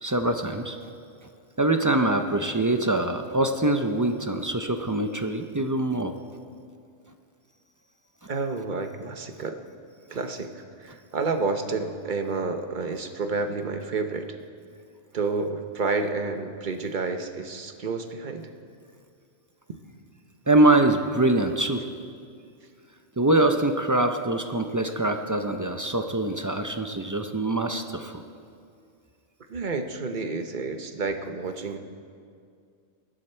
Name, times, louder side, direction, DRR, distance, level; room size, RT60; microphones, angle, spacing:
voice 1, 0.0-0.8 1.6-6.1 20.5-21.9 23.2-28.2, right 2 dB, 30° right, 6 dB, 0.4 m, -24 dB
voice 2, 8.3-9.6 10.1-14.4 15.1-18.5 29.5-31.8, right 3 dB, 45° right, 6 dB, 0.9 m, -30 dB
19.5 x 12.5 x 4.4 m, 2.3 s
omnidirectional pair, 1.3 m